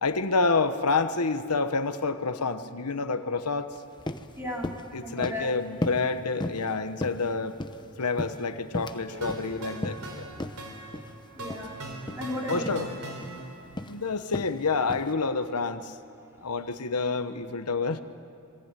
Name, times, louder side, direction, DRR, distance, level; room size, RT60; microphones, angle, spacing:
voice 1, 0.0-3.7 4.9-7.6 8.0-10.3 12.5-12.9 13.9-15.9 16.4-18.0, left 4 dB, 90° left, 9 dB, 1.2 m, -28 dB
sound 1, 3.7-3.8 4.1-4.3 4.6-4.9 5.2-5.5 5.8-6.1 6.4-6.7 7.0-7.8 8.2-9.0 9.3-9.5 9.8-10.1 10.4-10.6 10.9-11.1 11.5-11.7 12.0-12.2 12.7-12.9 13.2-13.4 13.8-14.0 14.3-14.6 14.9-15.1, left 1 dB, 20° left, 0.9 m, -35 dB
voice 2, 4.3-5.5 11.3-11.8 12.1-12.9 13.8-13.9 16.2-16.3, left 1 dB, 10° right, -2 dB, 4.5 m, -36 dB
sound 2, 9.1-13.8, right 2 dB, 75° right, 4.4 m, -40 dB
27.0 x 22.5 x 9.1 m, 2.4 s
head